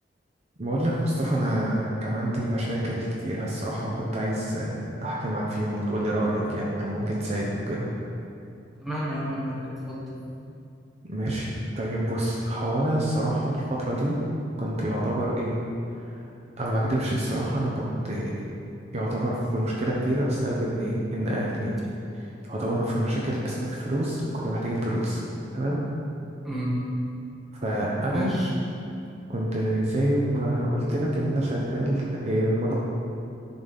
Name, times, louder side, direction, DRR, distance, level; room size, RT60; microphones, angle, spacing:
voice 1, 0.6-7.9 11.1-11.5 11.7-14.2 14.6-15.6 16.6-18.3 18.9-21.7 22.1-25.2 25.5-25.8 27.6-28.3 29.3-32.7, right 1 dB, 35° right, -5 dB, 0.8 m, -27 dB
voice 2, 8.8-10.0 26.4-26.8 28.1-28.5, equal, ahead, -7 dB, 1.3 m, -31 dB
11.0 x 4.0 x 3.5 m, 2.6 s
head